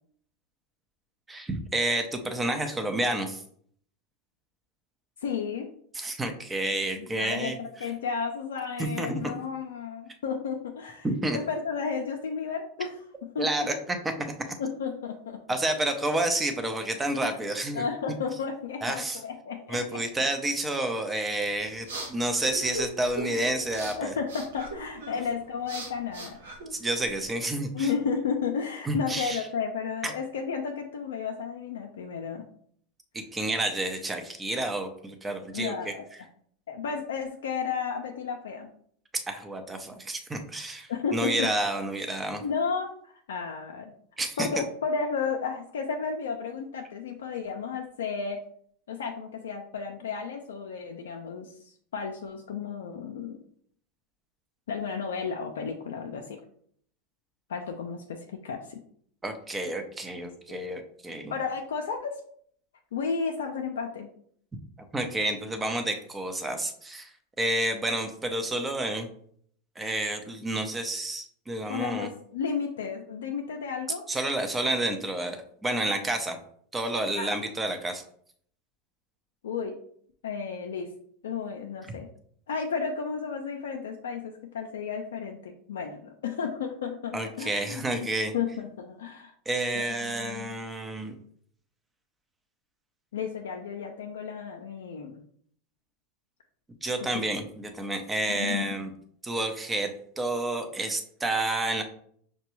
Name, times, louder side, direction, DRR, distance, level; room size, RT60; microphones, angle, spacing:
voice 1, 1.3-3.4 5.9-7.6 8.8-9.3 11.0-11.4 13.4-14.0 15.5-17.8 18.8-19.2 19.7-24.1 26.7-27.9 28.8-29.4 30.0-30.1 33.1-35.9 39.3-42.4 44.2-44.5 59.2-61.3 64.9-67.1 67.4-69.1 69.8-72.1 74.1-76.4 76.7-78.0 87.1-88.3 89.5-91.1 96.8-98.9 99.2-99.9 100.2-101.8, right 1 dB, 15° right, 7 dB, 0.7 m, -30 dB
voice 2, 5.2-5.7 7.0-11.1 11.3-13.7 14.6-15.4 17.2-17.4 17.7-20.0 23.2-23.5 24.0-26.4 27.7-32.5 35.5-36.0 36.7-38.7 40.9-41.5 42.4-43.9 44.4-48.4 48.9-53.4 54.7-56.4 57.5-58.8 60.5-60.6 61.3-62.2 62.9-64.1 71.7-74.0 77.2-77.4 79.4-79.8 80.2-80.9 81.2-82.1 82.5-87.8 88.3-89.3 89.7-90.5 93.1-95.2 97.0-97.2 98.3-98.7, left 6 dB, 85° left, 2 dB, 0.4 m, -33 dB
sound 1, 21.4-27.3, right 1 dB, 85° right, 0.9 m, -40 dB
5.8 x 2.2 x 3.0 m, 0.62 s
hypercardioid pair, 105°, 0 cm